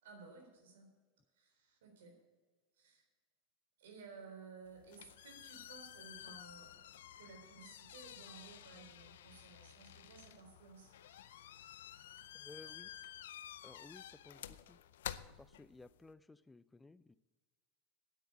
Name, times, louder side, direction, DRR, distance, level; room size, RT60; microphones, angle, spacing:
voice 1, 0.0-0.9 1.4-2.2 2.8-3.0 3.8-10.9 14.3-14.5, right 4 dB, 80° right, 3 dB, 3.8 m, -56 dB
sound 1, 4.7-16.1, left 11 dB, 80° left, 0.5 m, -52 dB
voice 2, 12.3-12.9 13.6-14.8 15.4-17.2, left 3 dB, 10° left, 17 dB, 0.4 m, -57 dB
9.3 x 9.1 x 8.3 m, 1.3 s
hypercardioid pair, 100°, 0 cm